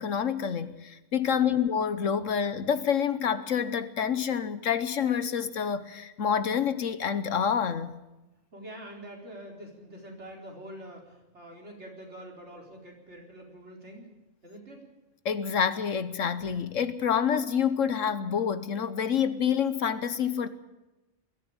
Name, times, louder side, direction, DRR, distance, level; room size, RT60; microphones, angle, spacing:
voice 1, 0.0-8.0 15.2-20.5, left 7 dB, 65° left, 1.3 m, -27 dB
voice 2, 1.2-1.6 8.5-14.1 14.4-14.8, right 1 dB, 55° right, 4.7 m, -45 dB
21.5 x 13.5 x 8.8 m
omnidirectional pair, 1.4 m